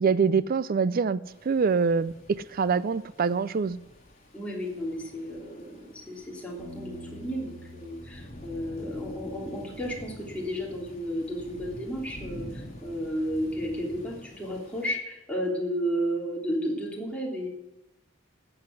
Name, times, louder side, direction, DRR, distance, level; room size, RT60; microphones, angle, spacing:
voice 1, 0.0-1.2 1.4-3.8, right 5 dB, 45° right, 17 dB, 0.4 m, -25 dB
sound 1, 1.2-14.9, equal, 35° left, 3.8 m, -47 dB
voice 2, 4.3-17.5, equal, 5° left, -3 dB, 3.3 m, -33 dB
Bass guitar, 6.6-12.8, equal, 20° right, 7.1 m, -49 dB
13.5 x 7.9 x 9.5 m, 0.94 s
head